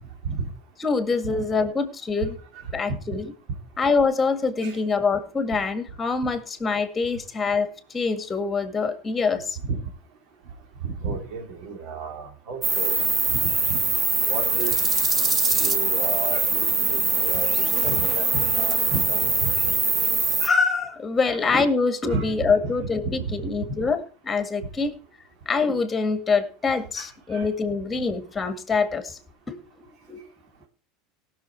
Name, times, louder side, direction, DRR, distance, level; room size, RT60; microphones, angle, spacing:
voice 1, 0.8-2.4 2.7-3.3 3.8-9.6 20.4-25.0 25.5-29.2 29.5-30.2, left 4 dB, 15° left, 10 dB, 1.9 m, -25 dB
voice 2, 10.8-13.0 14.3-14.7 15.5-17.5 17.8-19.5 21.3-21.4 22.1-22.5 23.2-23.3 27.0-27.1 27.3-27.4, right 4 dB, 60° right, 4 dB, 2.8 m, -32 dB
sound 1, 12.6-20.5, right 3 dB, 25° right, 1.6 m, -22 dB
17.5 x 6.4 x 4.5 m, 0.38 s
supercardioid pair, 135°, 0 cm